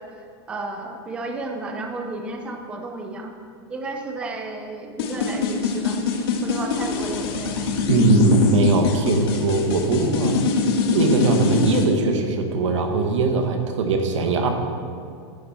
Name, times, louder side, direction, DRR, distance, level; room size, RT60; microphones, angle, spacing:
voice 1, 0.0-3.3 3.7-6.0 6.4-7.6, right 2 dB, 5° right, 3 dB, 0.5 m, -33 dB
sound 1, 5.0-11.8, left 5 dB, 55° left, 1.5 m, -23 dB
voice 2, 7.9-10.4 10.9-14.5, right 3 dB, 85° right, 4 dB, 1.6 m, -20 dB
11.0 x 10.5 x 4.3 m, 2.3 s
supercardioid pair, 180°, 15 cm